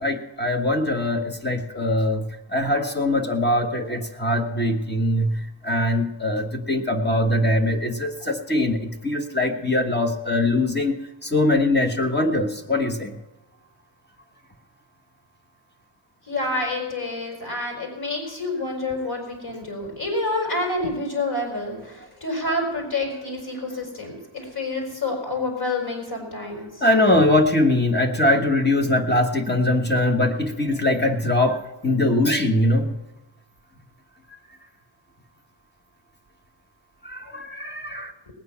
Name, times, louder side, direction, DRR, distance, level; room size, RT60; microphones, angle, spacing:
voice 1, 0.0-2.2 2.5-5.4 5.7-8.8 9.0-10.9 11.3-13.1 26.8-31.6 31.8-32.9 37.3-38.1, left 1 dB, 20° left, 5 dB, 1.4 m, -21 dB
voice 2, 16.3-26.7, left 2 dB, 45° left, 2 dB, 4.9 m, -28 dB
19.0 x 9.5 x 5.8 m, 1.1 s
wide cardioid pair, 145°, 50 cm